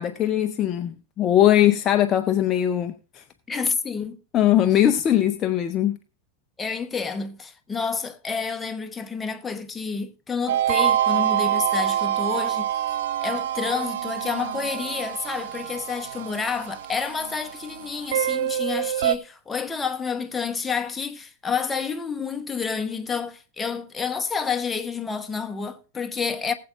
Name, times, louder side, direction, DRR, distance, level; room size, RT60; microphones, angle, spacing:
voice 1, 0.0-3.2 4.3-6.0, left 11 dB, 30° left, 0.5 m, -20 dB
voice 2, 3.5-4.2 6.6-12.7 13.2-26.5, left 5 dB, 15° left, 0.9 m, -29 dB
sound 1, 10.5-19.2, right 11 dB, 55° right, 0.4 m, -26 dB
19.5 x 7.5 x 2.5 m
figure-of-eight pair, 90°, 0 cm